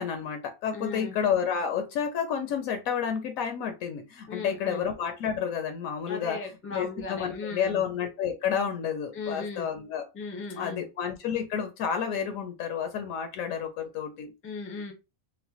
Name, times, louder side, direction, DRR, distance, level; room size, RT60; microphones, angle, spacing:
voice 1, 0.0-6.4 6.7-10.0 10.5-14.3, left 7 dB, 80° left, 1.0 m, -30 dB
voice 2, 0.7-1.1 4.3-4.8 6.1-7.8 9.1-9.7 10.1-10.9 14.4-14.9, left 4 dB, 15° left, 0.4 m, -37 dB
4.0 x 2.1 x 2.8 m
omnidirectional pair, 1.4 m